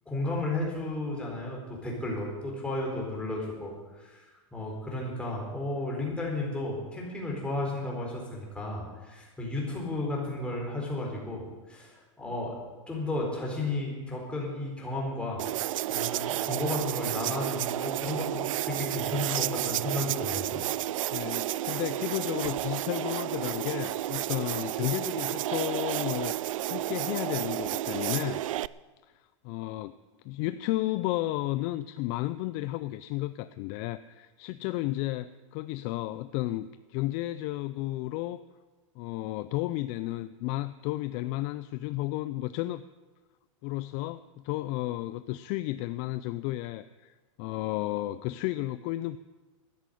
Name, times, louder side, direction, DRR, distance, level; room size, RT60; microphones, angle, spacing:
voice 1, 0.1-12.6 12.9-20.6, left 2 dB, 5° left, -2 dB, 4.2 m, -33 dB
sound 1, 15.4-28.7, right 14 dB, 85° right, 0.4 m, -31 dB
voice 2, 21.1-28.4 29.4-30.0 30.2-38.4 39.0-42.8 43.6-49.2, left 16 dB, 40° left, 13 dB, 0.4 m, -33 dB
13.0 x 9.9 x 10.0 m, 1.3 s
supercardioid pair, 150°, 17 cm